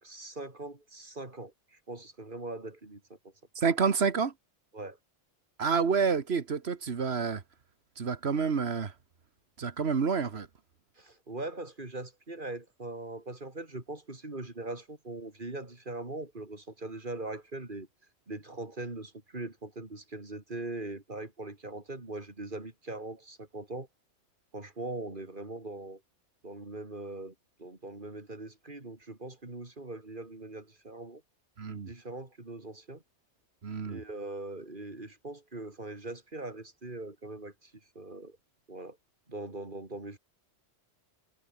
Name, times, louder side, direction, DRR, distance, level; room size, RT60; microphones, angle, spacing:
voice 1, 0.0-3.3 4.7-5.0 11.0-17.9 18.3-23.9 24.5-26.0 26.4-31.2 31.7-33.0 33.9-38.4 38.7-39.0 39.3-40.2, right 2 dB, 45° right, 3.8 m, -41 dB
voice 2, 3.6-4.3 5.6-7.4 8.0-8.9 9.6-10.5 31.6-31.9 33.6-34.0, right 5 dB, 65° right, 1.7 m, -28 dB
omnidirectional pair, 1.2 m